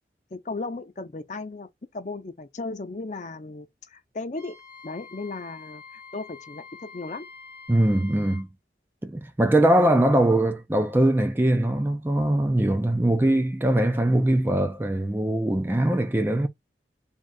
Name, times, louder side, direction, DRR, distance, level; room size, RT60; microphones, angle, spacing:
voice 1, 0.3-1.7 1.9-4.6 4.8-7.2, left 3 dB, 40° left, 0.5 m, -36 dB
Wind instrument woodwind instrument, 4.4-8.5, left 5 dB, 55° right, 1.9 m, -46 dB
voice 2, 7.7-8.5 9.0-16.5, right 1 dB, 10° right, 0.4 m, -22 dB
3.6 x 2.4 x 4.1 m
head